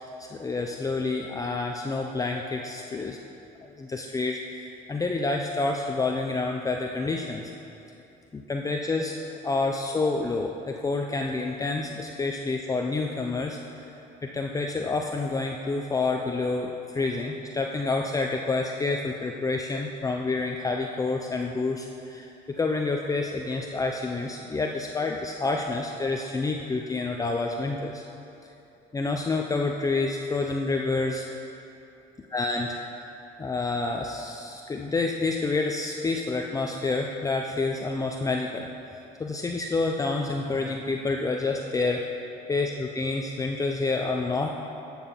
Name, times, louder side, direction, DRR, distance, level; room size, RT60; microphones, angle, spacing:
voice 1, 0.2-3.2 3.6-7.5 8.3-13.6 14.2-28.0 28.9-31.2 32.2-32.8 33.4-38.7 39.2-42.0 42.5-44.5, left 3 dB, 20° left, 2 dB, 0.6 m, -28 dB
13.0 x 7.2 x 5.6 m, 2.9 s
cardioid pair, 110°, 17 cm